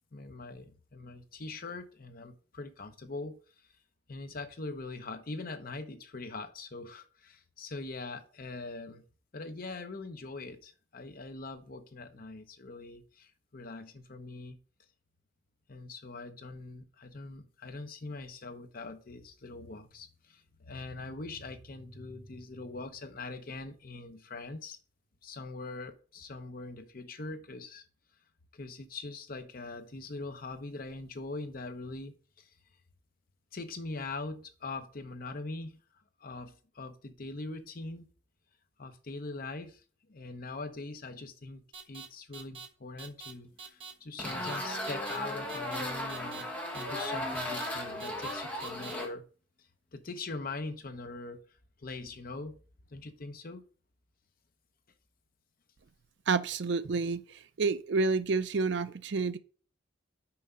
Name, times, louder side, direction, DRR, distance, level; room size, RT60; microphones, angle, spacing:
voice 1, 0.1-3.4 4.1-9.0 9.3-14.6 15.7-24.8 25.2-27.8 28.5-32.5 33.5-35.8 36.2-38.1 38.8-39.8 40.1-41.6 41.9-46.5 46.7-49.2 49.9-51.4 51.8-52.6 52.9-53.6, left 3 dB, 45° left, 0.8 m, -42 dB
sound 1, 41.7-42.1 42.3-42.7 43.0-43.3 43.6-43.9 44.2-44.6 44.8-45.2 45.5-45.8 46.1-46.4 46.7-47.1 47.4-47.7 48.0-48.3 48.6-48.9, right 6 dB, 30° right, 1.3 m, -45 dB
sound 2, 44.2-49.1, left 1 dB, 10° left, 1.5 m, -36 dB
voice 2, 56.3-59.4, right 4 dB, 60° right, 0.5 m, -29 dB
5.9 x 4.9 x 5.4 m
head